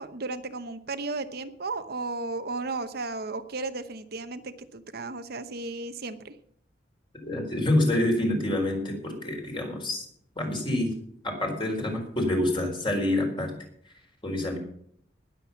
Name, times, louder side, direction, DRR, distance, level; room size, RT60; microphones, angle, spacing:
voice 1, 0.0-6.3, right 3 dB, 60° right, 9 dB, 1.0 m, -34 dB
voice 2, 7.2-10.1 10.4-10.9 11.2-13.5 14.2-14.6, left 1 dB, 30° left, 1 dB, 4.3 m, -27 dB
19.5 x 7.7 x 5.7 m, 0.67 s
head